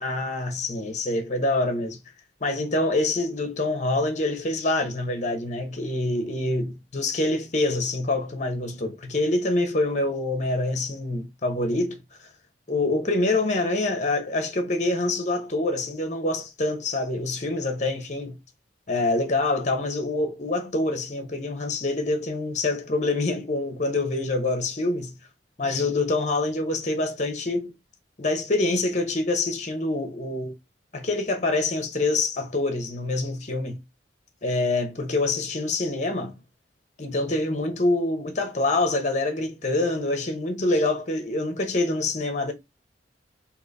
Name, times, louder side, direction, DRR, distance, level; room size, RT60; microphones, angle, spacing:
voice 1, 0.0-2.0 2.4-12.3 12.7-18.4 18.9-25.1 25.6-27.7 28.2-30.5 30.9-33.8 34.4-36.4 37.0-42.5, left 2 dB, 40° left, 0.8 m, -26 dB
3.8 x 2.9 x 4.0 m
head